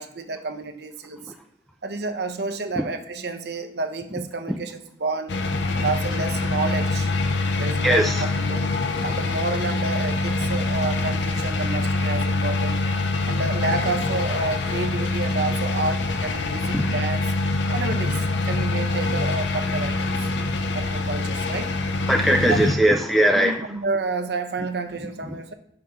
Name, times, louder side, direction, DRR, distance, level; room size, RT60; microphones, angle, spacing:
voice 1, 0.0-1.3 1.8-5.4 5.7-7.1 7.5-8.7 9.0-12.8 13.2-17.3 17.7-20.3 20.7-21.7 22.5-22.6 23.3-25.5, right 3 dB, 65° right, 6 dB, 0.8 m, -30 dB
sound 1, 5.3-22.7, left 2 dB, 85° left, 0.6 m, -25 dB
voice 2, 7.8-8.2 16.7-16.9 22.1-23.5, right 1 dB, ahead, 4 dB, 0.4 m, -19 dB
5.7 x 5.0 x 5.6 m, 0.79 s
head